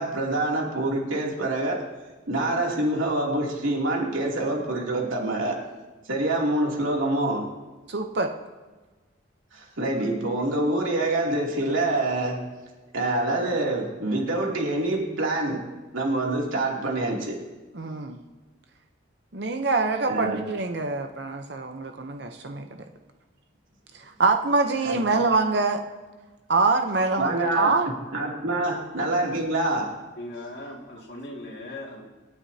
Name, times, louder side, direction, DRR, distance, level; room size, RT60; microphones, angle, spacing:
voice 1, 0.0-1.9 2.3-5.6 6.1-7.4 9.5-12.4 12.9-15.6 15.9-17.3 20.1-20.4 24.8-25.0 27.2-27.8 28.1-29.9, right 2 dB, 90° right, -2 dB, 2.8 m, -26 dB
voice 2, 7.9-8.3 17.7-18.2 19.3-22.6 24.2-25.8 26.5-27.9, right 3 dB, 55° right, 5 dB, 0.8 m, -24 dB
voice 3, 30.2-32.1, left 1 dB, 55° left, 0 dB, 2.2 m, -38 dB
26.5 x 9.2 x 2.8 m, 1.3 s
head